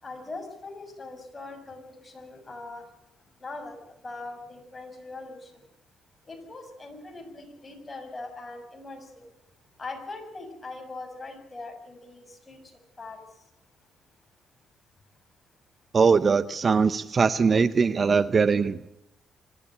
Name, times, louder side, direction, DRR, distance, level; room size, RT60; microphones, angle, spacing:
voice 1, 0.0-2.9 3.4-5.6 6.2-9.3 9.8-12.6 13.0-13.2, left 3 dB, 25° left, 4 dB, 6.6 m, -41 dB
voice 2, 15.9-18.9, right 5 dB, 40° right, 15 dB, 0.7 m, -21 dB
25.0 x 13.0 x 10.0 m, 0.84 s
cardioid pair, 90°, 0 cm